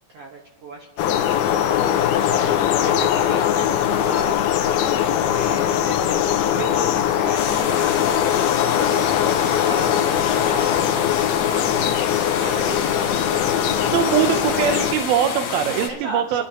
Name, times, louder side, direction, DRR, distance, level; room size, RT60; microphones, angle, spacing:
voice 1, 0.1-1.4 2.2-4.4 5.3-7.9 8.6-11.9 12.4-13.9 14.4-14.9 15.9-16.4, right 3 dB, 60° right, 0 dB, 1.6 m, -36 dB
sound 1, 1.0-14.9, left 10 dB, 90° left, 2.6 m, -21 dB
sound 2, 7.3-15.9, left 6 dB, 60° left, 2.2 m, -29 dB
voice 2, 13.8-16.4, right 9 dB, 80° right, 6 dB, 2.6 m, -22 dB
29.5 x 11.5 x 2.9 m, 1.0 s
omnidirectional pair, 4.3 m